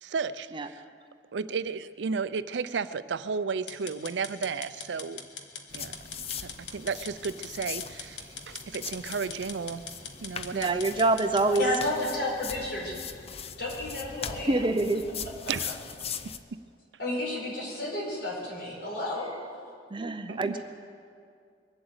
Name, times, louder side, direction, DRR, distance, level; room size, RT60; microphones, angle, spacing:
voice 1, 0.0-0.8 1.3-5.2 5.7-6.0 6.4-9.8 10.2-10.8 15.5-15.8 20.3-20.6, right 5 dB, 85° right, 15 dB, 0.5 m, -33 dB
sound 1, 3.7-11.8, left 6 dB, 80° left, 1.4 m, -42 dB
sound 2, 5.7-16.4, left 7 dB, 35° left, 0.6 m, -41 dB
voice 2, 10.5-11.6 14.5-15.0 19.9-20.6, right 2 dB, 30° right, 9 dB, 0.6 m, -25 dB
voice 3, 11.6-12.9 13.6-14.7 17.0-19.3 20.5-20.6, left 1 dB, 65° left, -4 dB, 5.4 m, -32 dB
22.0 x 7.9 x 8.0 m, 2.3 s
head